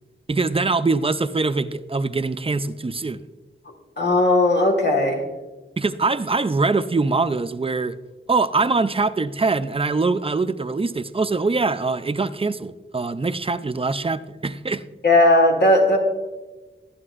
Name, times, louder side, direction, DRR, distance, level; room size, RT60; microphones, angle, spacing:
voice 1, 0.3-3.2 5.8-8.0 8.3-14.8, right 3 dB, 25° right, 12 dB, 0.4 m, -23 dB
voice 2, 4.0-5.2 15.0-16.0, left 1 dB, 55° left, 2 dB, 1.6 m, -17 dB
12.0 x 9.6 x 2.5 m, 1.2 s
wide cardioid pair, 75°, 21 cm